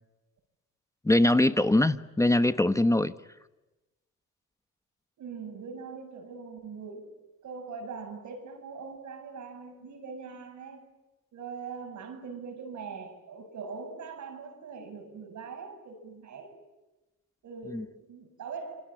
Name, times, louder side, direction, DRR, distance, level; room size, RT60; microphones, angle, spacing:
voice 1, 1.0-3.1 17.7-17.8, left 1 dB, 10° left, 11 dB, 1.1 m, -22 dB
voice 2, 5.2-7.1 7.4-10.8 11.3-16.6 17.4-18.9, right 5 dB, 70° right, 6 dB, 7.7 m, -42 dB
27.5 x 24.0 x 8.8 m, 1.0 s
cardioid pair, 90°, 30 cm